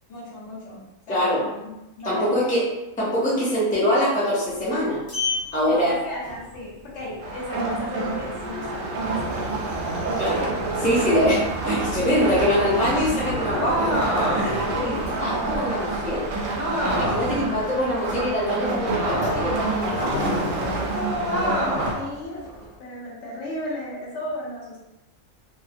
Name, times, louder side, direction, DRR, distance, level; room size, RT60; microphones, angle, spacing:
voice 1, 0.1-2.6 3.4-3.7 5.7-11.4 12.4-12.5 13.2-13.3 14.2-15.6 17.2-18.1 20.7-22.5 22.8-24.8, left 1 dB, 65° left, -5 dB, 0.9 m, -35 dB
voice 2, 1.1-1.4 2.0-2.7 3.0-5.0 5.5-6.0 10.2-10.5 10.8-11.4 11.6-16.3 16.9-20.3, equal, 10° left, -7 dB, 0.4 m, -24 dB
Sliding door, 4.5-22.8, left 2 dB, 45° left, 0.7 m, -36 dB
sound 1, 7.2-21.9, right 3 dB, 75° right, 1.0 m, -28 dB
sound 2, 13.5-14.7 16.5-17.4 18.9-19.6 21.3-22.1, right 1 dB, 50° right, 0.5 m, -26 dB
2.4 x 2.1 x 2.5 m, 0.97 s
omnidirectional pair, 1.4 m